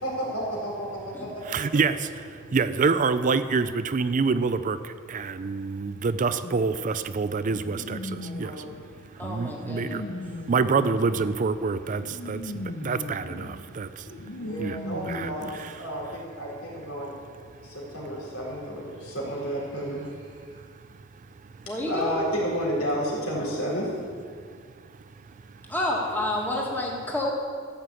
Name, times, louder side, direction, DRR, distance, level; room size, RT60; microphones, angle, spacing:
voice 1, 0.0-2.1 8.1-8.6 14.4-17.1 17.6-20.2 21.9-23.9, equal, 85° left, -4 dB, 4.1 m, -32 dB
voice 2, 1.5-2.1 2.5-4.8 5.1-8.5 9.2-10.0 10.5-13.9 14.6-14.8 15.1-15.3 15.6-15.7, right 4 dB, 40° right, 12 dB, 0.4 m, -26 dB
sound 1, 6.4-15.5, left 2 dB, 65° left, 0.8 m, -39 dB
voice 3, 9.2-10.2 21.7-22.2 25.7-27.3, left 1 dB, 10° left, -3 dB, 1.7 m, -29 dB
14.0 x 6.0 x 8.3 m, 2.1 s
head